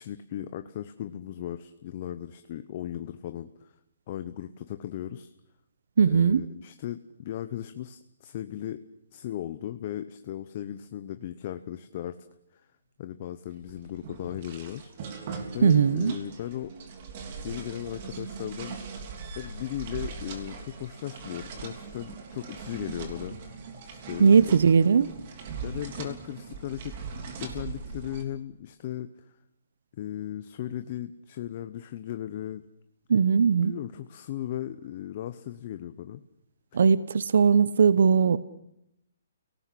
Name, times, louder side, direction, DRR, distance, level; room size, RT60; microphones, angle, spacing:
voice 1, 0.0-3.7 4.1-5.3 6.1-8.8 9.1-12.2 12.5-12.6 13.0-14.9 15.5-16.7 17.4-18.8 19.4-23.6 23.9-24.7 25.6-26.9 27.4-29.3 29.9-32.7 33.6-36.2, left 11 dB, 35° left, 10 dB, 0.9 m, -37 dB
voice 2, 6.0-6.4 15.6-16.1 24.2-25.1 33.1-33.8 36.7-38.4, right 6 dB, 65° right, 16 dB, 0.9 m, -19 dB
sound 1, 13.5-28.2, right 5 dB, 35° right, 3.4 m, -40 dB
29.5 x 18.0 x 8.5 m, 0.82 s
hypercardioid pair, 170°, 0 cm